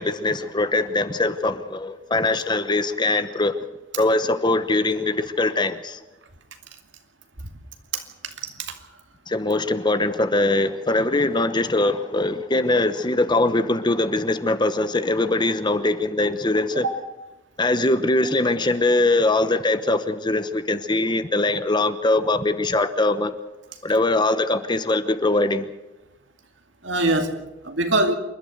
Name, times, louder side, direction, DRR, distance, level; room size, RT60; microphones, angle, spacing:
voice 1, 0.0-3.6 4.0-6.0 9.3-16.8 17.6-23.3 23.8-25.7, left 2 dB, 25° left, 1.0 m, -22 dB
voice 2, 8.4-8.7 16.8-17.0 26.8-28.1, right 2 dB, 75° right, 2.5 m, -23 dB
27.5 x 12.0 x 8.0 m
head